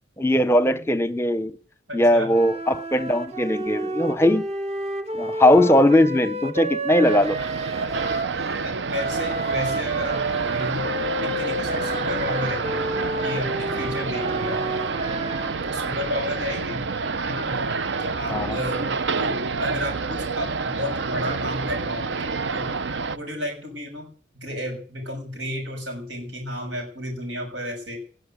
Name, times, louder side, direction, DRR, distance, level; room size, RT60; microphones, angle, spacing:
voice 1, 0.2-1.6 1.9-4.4 5.1-7.4 18.3-18.6, left 1 dB, 15° left, 0.7 m, -19 dB
voice 2, 1.9-2.3 6.9-7.3 8.6-10.9 11.2-12.8 13.2-14.6 15.7-16.9 17.2-17.6 18.0-18.9 19.2-22.8 23.1-24.1 24.3-28.0, equal, 90° right, 6.7 m, -32 dB
sound 1, 2.3-8.4 8.9-15.6, right 1 dB, 35° right, 1.6 m, -30 dB
sound 2, 7.0-23.2, right 4 dB, 70° right, 0.7 m, -28 dB
20.0 x 7.7 x 9.0 m
head